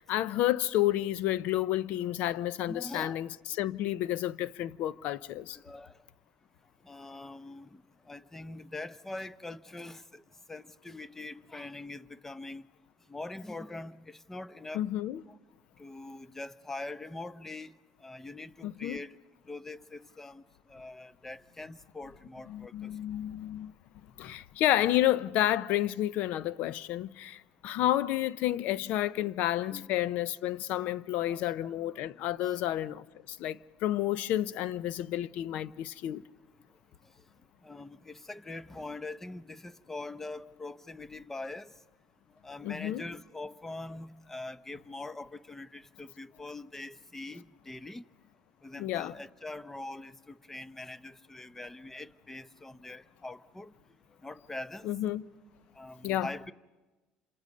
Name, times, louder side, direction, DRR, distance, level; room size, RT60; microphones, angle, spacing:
voice 1, 0.0-5.6 14.7-15.2 18.6-19.0 22.5-23.7 24.2-36.2 42.6-43.0 48.8-49.1 54.8-55.2 56.0-56.3, left 13 dB, 70° left, 0.7 m, -30 dB
voice 2, 2.7-3.2 5.6-5.9 6.8-7.8 8.1-10.2 10.5-12.6 13.1-14.8 15.3-15.4 15.8-17.7 18.0-19.2 19.5-20.4 20.7-22.9 29.2-29.3 29.6-29.8 31.3-31.7 32.4-32.6 37.6-41.7 42.4-48.0 48.6-53.7 54.2-54.9 55.8-56.5, left 2 dB, 10° left, 0.9 m, -43 dB
28.5 x 27.0 x 5.4 m
cardioid pair, 110°, 3 cm